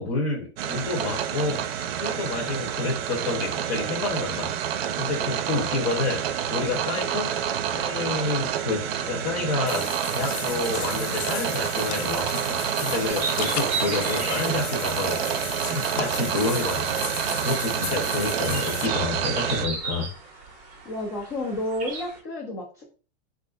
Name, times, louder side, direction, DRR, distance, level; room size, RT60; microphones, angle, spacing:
voice 1, 0.0-1.7 2.0-7.4 7.7-20.1, left 3 dB, 35° left, -2 dB, 0.8 m, -29 dB
sound 1, 0.6-19.7, right 9 dB, 65° right, 0.5 m, -28 dB
Water / Bathtub (filling or washing), 9.7-18.9, left 11 dB, 90° left, 0.5 m, -35 dB
sound 2, 13.1-22.2, right 4 dB, 25° right, 0.6 m, -36 dB
voice 2, 20.8-22.9, left 1 dB, 15° left, -3 dB, 0.4 m, -31 dB
3.5 x 2.4 x 2.4 m, 0.36 s
supercardioid pair, 170°, 31 cm